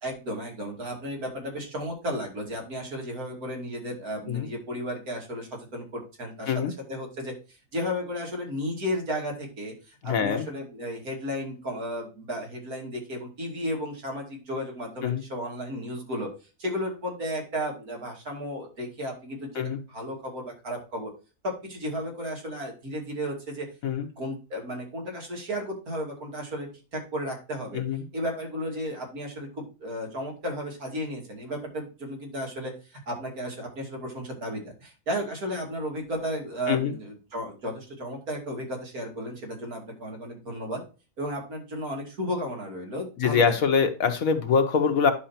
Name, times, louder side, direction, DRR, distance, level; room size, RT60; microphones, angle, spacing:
voice 1, 0.0-16.3 16.6-21.1 21.4-23.7 24.2-27.8 28.1-40.8 41.2-43.5, equal, 75° right, 0 dB, 3.1 m, -34 dB
voice 2, 10.0-10.5 15.0-15.2 19.5-19.8 23.8-24.1 27.7-28.0 36.7-36.9 43.2-45.1, left 6 dB, 70° left, 7 dB, 1.5 m, -24 dB
10.0 x 6.1 x 2.8 m, 0.33 s
omnidirectional pair, 1.6 m